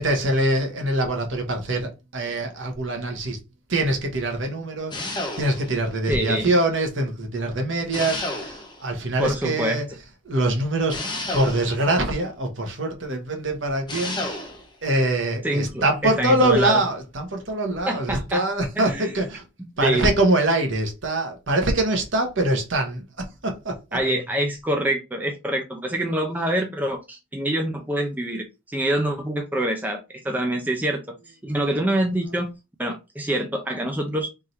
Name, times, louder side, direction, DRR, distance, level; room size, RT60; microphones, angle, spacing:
voice 1, 0.0-3.4 3.7-9.8 10.2-14.5 14.8-19.4 19.8-23.8, right 1 dB, 60° right, 1.2 m, -24 dB
sound 1, 4.9-5.8 7.9-8.9 10.9-11.9 13.9-14.7, left 2 dB, 20° left, 0.9 m, -31 dB
voice 2, 6.1-6.5 9.2-9.8 15.4-16.8 17.9-18.4 18.8-19.1 19.8-20.1 23.9-31.0 31.3-32.5 32.8-34.3, right 1 dB, 10° right, 0.5 m, -25 dB
3.6 x 2.7 x 4.4 m
head